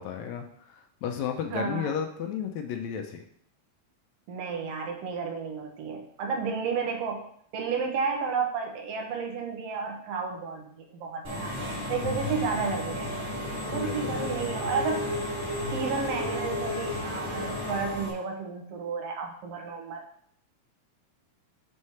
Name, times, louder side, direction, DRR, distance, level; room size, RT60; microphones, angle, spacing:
voice 1, 0.0-3.2 11.9-12.4 13.7-14.3, left 8 dB, 75° left, 4 dB, 1.9 m, -34 dB
voice 2, 1.5-1.9 4.3-7.2 7.5-11.5 11.9-13.1 13.6-15.1 15.7-20.0, right 5 dB, 65° right, 2 dB, 2.0 m, -32 dB
Engine / Mechanisms, 11.2-18.1, left 1 dB, 25° right, 2.3 m, -33 dB
6.4 x 4.3 x 5.6 m, 0.65 s
omnidirectional pair, 3.3 m